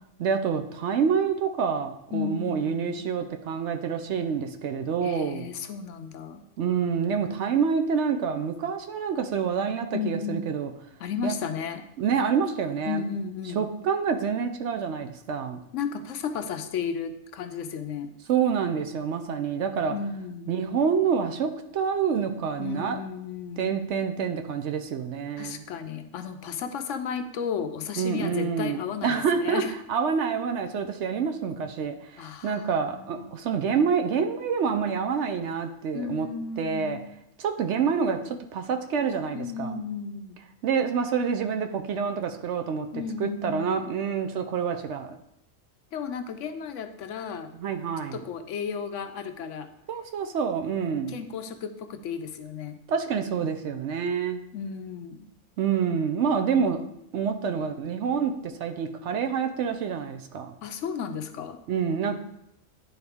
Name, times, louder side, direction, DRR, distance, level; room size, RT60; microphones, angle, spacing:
voice 1, 0.2-5.5 6.6-10.7 11.2-11.3 12.0-13.0 13.5-15.6 18.3-20.0 20.5-23.0 23.6-25.6 28.0-29.6 29.9-36.3 36.6-37.0 37.4-39.8 40.6-42.9 43.2-45.2 47.5-48.2 49.9-51.2 52.9-54.4 55.6-56.8 57.1-60.5 61.7-62.2, right 6 dB, 65° right, 7 dB, 0.8 m, -27 dB
voice 2, 2.1-3.1 5.0-6.4 9.9-10.6 11.0-11.8 12.9-13.6 15.7-18.1 19.9-20.6 22.6-23.8 25.4-29.7 32.2-33.4 35.9-37.0 39.3-40.4 42.9-43.9 45.9-47.5 48.1-49.7 51.1-52.8 54.5-55.3 60.6-61.6, left 6 dB, 75° left, 8 dB, 0.9 m, -34 dB
10.5 x 4.0 x 3.5 m, 0.79 s
omnidirectional pair, 1.4 m